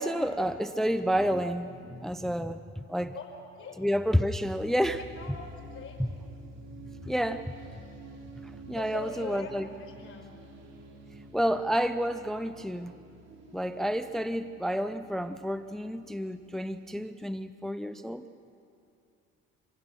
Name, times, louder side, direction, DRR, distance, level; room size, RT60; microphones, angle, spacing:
voice 1, 0.0-3.1 3.8-5.0 7.0-7.5 8.4-9.7 11.3-12.9 13.5-18.3, equal, ahead, 11 dB, 0.6 m, -30 dB
sound 1, 4.8-16.8, right 1 dB, 60° right, 3.3 m, -49 dB
voice 2, 5.0-6.0 8.7-10.3, left 5 dB, 45° left, 2 dB, 4.9 m, -42 dB
26.0 x 16.0 x 6.5 m, 2.5 s
supercardioid pair, 80°, 29 cm